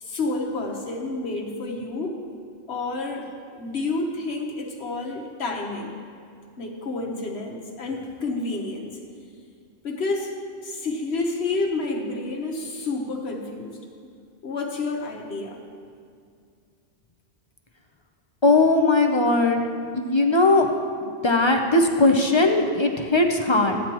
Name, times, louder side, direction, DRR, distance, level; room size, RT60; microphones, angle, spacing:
voice 1, 0.0-2.2 2.7-3.3 3.5-6.0 6.6-9.0 9.8-10.3 10.6-13.8 14.4-15.6, left 3 dB, 70° left, 1 dB, 1.4 m, -29 dB
voice 2, 18.4-19.6 19.9-20.7 21.0-23.8, left 2 dB, 30° left, 3 dB, 0.6 m, -19 dB
14.5 x 9.8 x 3.0 m, 2.2 s
omnidirectional pair, 1.1 m